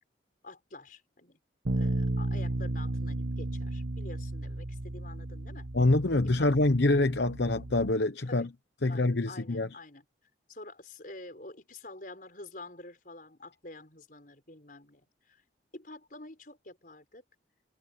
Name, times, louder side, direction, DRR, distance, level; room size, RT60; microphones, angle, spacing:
voice 1, 0.4-1.4 1.7-5.7 6.3-6.5 8.2-8.5 8.8-10.0 10.5-15.4 15.7-17.2, left 2 dB, 45° left, 5.3 m, -48 dB
Bass guitar, 1.7-7.9, right 2 dB, 85° right, 1.5 m, -34 dB
voice 2, 5.7-8.5 8.8-9.7, left 2 dB, 70° left, 1.0 m, -25 dB
head